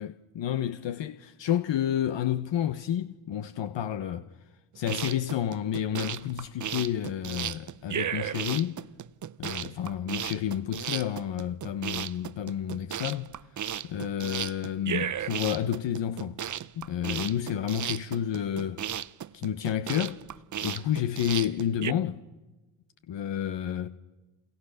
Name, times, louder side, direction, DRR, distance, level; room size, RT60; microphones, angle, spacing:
voice 1, 0.0-4.3 4.7-8.8 9.4-13.3 13.8-16.4 16.8-18.8 19.3-20.2 20.6-22.2 23.1-23.9, left 10 dB, 60° left, 1.4 m, -30 dB
sound 1, 4.7-21.9, right 9 dB, 35° right, 0.8 m, -35 dB
29.0 x 28.5 x 6.7 m
hypercardioid pair, 50°, 49 cm